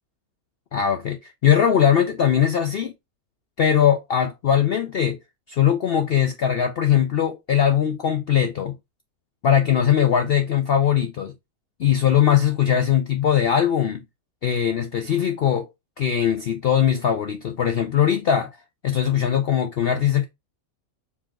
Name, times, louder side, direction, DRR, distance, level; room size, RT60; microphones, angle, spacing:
voice 1, 0.7-2.9 3.6-5.2 5.5-8.7 9.4-11.3 11.8-14.0 14.4-15.7 16.0-18.5 18.8-20.3, left 9 dB, 70° left, 0.5 m, -20 dB
4.9 x 2.8 x 3.6 m
omnidirectional pair, 1.6 m